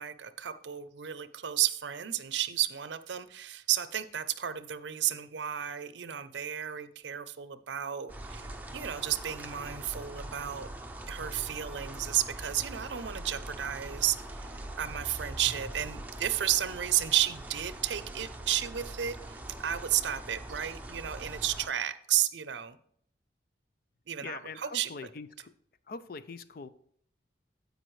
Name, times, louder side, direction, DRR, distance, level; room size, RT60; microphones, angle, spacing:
voice 1, 0.0-10.7 11.1-19.4 19.6-22.8 24.1-24.9, right 11 dB, 75° right, 13 dB, 0.6 m, -32 dB
sound 1, 8.1-21.7, right 1 dB, 10° right, 0.6 m, -42 dB
voice 2, 24.2-25.5 25.9-26.7, left 4 dB, 50° left, 14 dB, 0.5 m, -43 dB
15.5 x 5.2 x 3.1 m, 0.67 s
head